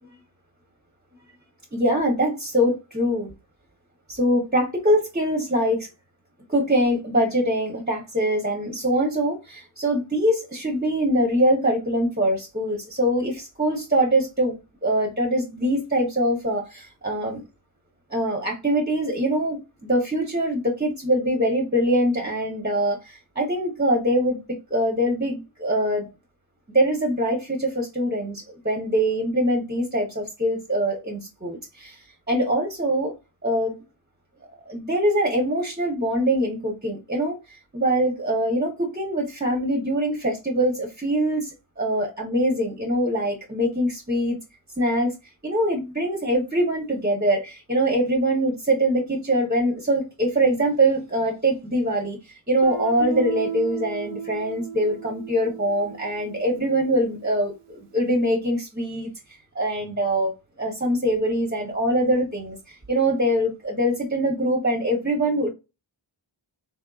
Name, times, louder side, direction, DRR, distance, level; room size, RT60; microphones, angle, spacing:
voice 1, 1.7-3.3 4.1-5.9 6.5-17.4 18.1-26.1 26.7-33.1 33.4-33.8 34.7-44.4 44.8-45.1 45.4-59.1 59.5-60.3 60.6-65.5, right 1 dB, 20° right, 0.9 m, -23 dB
Guitar, 52.6-57.3, right 7 dB, 90° right, 0.8 m, -35 dB
3.6 x 3.2 x 2.3 m
wide cardioid pair, 60°, 50 cm